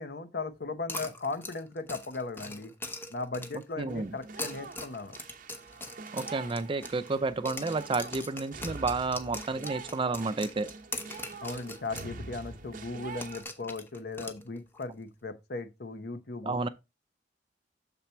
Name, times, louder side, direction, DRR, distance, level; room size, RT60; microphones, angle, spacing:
voice 1, 0.0-2.7 3.1-5.2 11.4-16.6, left 3 dB, 60° left, 0.9 m, -37 dB
sound 1, 0.9-3.7 4.2-7.2 7.5-12.1 12.4-12.5 13.2-14.8, left 2 dB, 10° left, 0.8 m, -41 dB
voice 2, 3.8-4.1 6.1-10.7 16.4-16.7, right 3 dB, 30° right, 0.4 m, -31 dB
sound 2, 3.9-13.4, right 4 dB, 50° right, 0.8 m, -45 dB
7.0 x 4.1 x 4.4 m
head